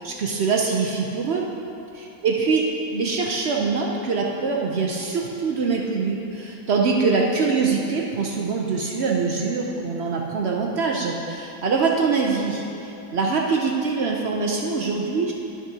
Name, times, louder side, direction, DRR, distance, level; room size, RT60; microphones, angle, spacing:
voice 1, 0.0-1.4 1.9-2.6 2.9-15.3, right 4 dB, 65° right, -1 dB, 0.6 m, -24 dB
12.0 x 6.2 x 2.7 m, 2.9 s
omnidirectional pair, 1.8 m